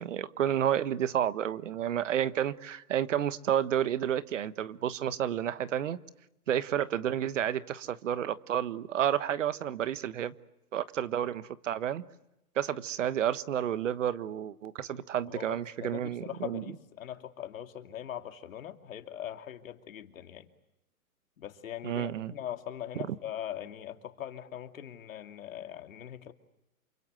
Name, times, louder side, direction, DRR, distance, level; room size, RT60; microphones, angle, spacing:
voice 1, 0.0-6.0 6.5-10.3 10.7-12.0 12.5-16.6 21.8-22.3, right 10 dB, 55° right, 14 dB, 1.3 m, -30 dB
voice 2, 15.3-20.5 21.4-26.3, left 10 dB, 60° left, 6 dB, 2.7 m, -41 dB
28.0 x 25.5 x 8.0 m, 0.89 s
hypercardioid pair, 160°, 45 cm